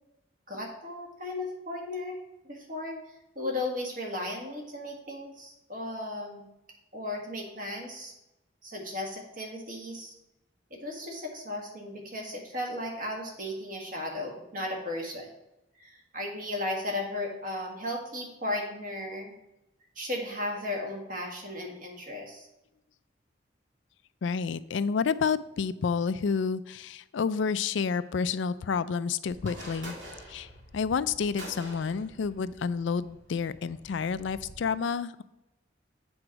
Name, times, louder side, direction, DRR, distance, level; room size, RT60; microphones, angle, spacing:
voice 1, 0.5-2.2 2.5-3.0 3.4-6.5 6.9-8.1 8.6-10.1 10.7-15.3 15.8-19.3 20.0-22.5, left 1 dB, 45° right, 0 dB, 1.7 m, -35 dB
voice 2, 24.2-30.0 30.3-35.2, left 5 dB, 75° left, 15 dB, 0.4 m, -29 dB
sound 1, 29.3-34.6, equal, 80° right, 2.1 m, -47 dB
7.8 x 4.4 x 5.9 m, 0.94 s
head